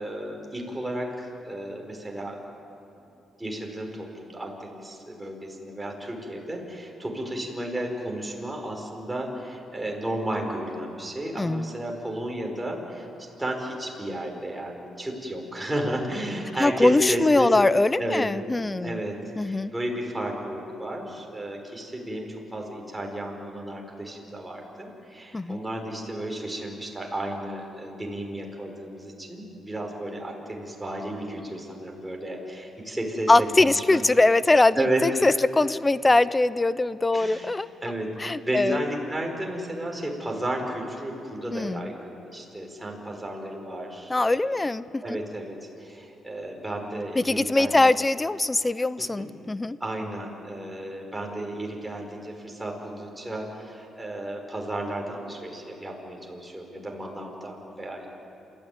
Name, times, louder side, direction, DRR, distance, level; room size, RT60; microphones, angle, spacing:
voice 1, 0.0-2.4 3.4-13.1 13.4-17.5 18.0-34.0 34.8-35.3 37.1-37.5 37.8-44.6 45.0-47.9 49.0-49.3 49.8-58.1, right 1 dB, 10° right, 1 dB, 5.2 m, -33 dB
voice 2, 11.4-11.7 16.6-19.0 19.4-19.7 25.3-25.6 33.3-34.8 35.0-37.7 38.2-38.8 41.5-41.9 44.1-45.2 47.2-49.8, left 2 dB, 20° left, 17 dB, 0.6 m, -22 dB
27.5 x 14.5 x 9.7 m, 2.9 s
cardioid pair, 90°, 0 cm